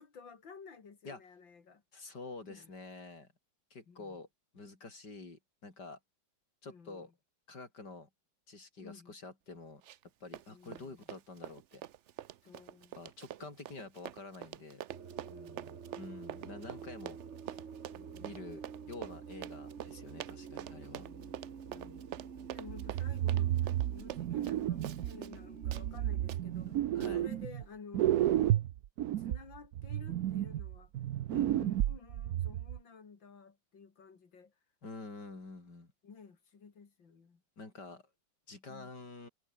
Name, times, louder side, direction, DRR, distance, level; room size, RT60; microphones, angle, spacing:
voice 1, 0.0-1.8 2.5-2.7 3.9-4.2 6.7-7.1 8.8-9.1 10.5-11.1 12.4-13.1 15.3-15.8 17.9-18.5 20.7-22.0 22.5-26.9 27.1-28.6 29.2-30.9 31.5-34.5 36.0-37.4 38.7-39.1, left 5 dB, 85° left, 3.5 m, -54 dB
voice 2, 1.9-3.3 3.7-4.3 4.5-6.0 6.6-7.1 7.5-8.1 8.5-9.8 10.2-11.8 12.9-14.8 16.0-17.2 17.5-17.6 18.2-21.1 26.9-27.2 31.3-31.7 34.8-35.9 37.6-38.0 38.5-39.3, left 3 dB, 60° left, 5.3 m, -48 dB
Run, 9.8-10.1 10.3-25.4 25.7-25.9 26.3-26.4 27.0-27.1, right 11 dB, 85° right, 0.6 m, -46 dB
sound 1, 14.9-27.4, right 6 dB, 40° right, 1.4 m, -48 dB
sound 2, 22.7-25.2 25.6-27.7 27.9-32.8, right 12 dB, 65° right, 1.1 m, -32 dB
omnidirectional pair, 2.0 m